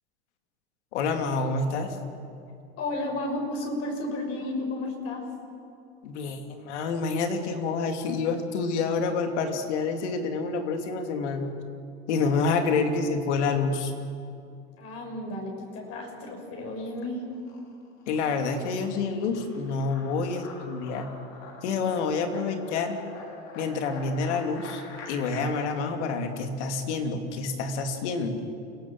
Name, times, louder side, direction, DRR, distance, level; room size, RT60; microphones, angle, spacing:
voice 1, 0.9-2.0 6.0-11.5 12.1-13.9 18.1-21.1 21.6-23.0 23.5-28.4, left 4 dB, 80° left, 5 dB, 3.1 m, -28 dB
voice 2, 2.8-5.3 12.7-12.8 14.8-17.3, left 2 dB, 45° left, 1 dB, 6.7 m, -33 dB
sound 1, 15.5-16.3 16.6-25.4, left 4 dB, 60° left, 5.7 m, -46 dB
29.0 x 18.0 x 7.4 m, 2.5 s
supercardioid pair, 125°, 34 cm